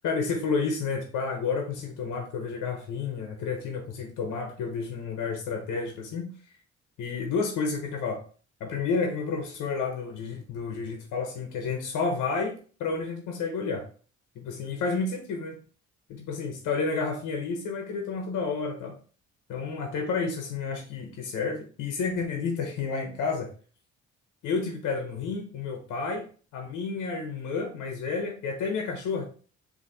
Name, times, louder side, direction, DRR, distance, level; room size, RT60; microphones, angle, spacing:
voice 1, 0.0-6.3 7.0-8.2 8.6-12.5 12.8-13.9 14.4-15.6 16.1-19.0 19.5-23.5 24.4-26.2 26.5-29.2, left 4 dB, 85° left, 3 dB, 0.9 m, -30 dB
4.2 x 2.9 x 3.9 m, 0.40 s
cardioid pair, 90°, 30 cm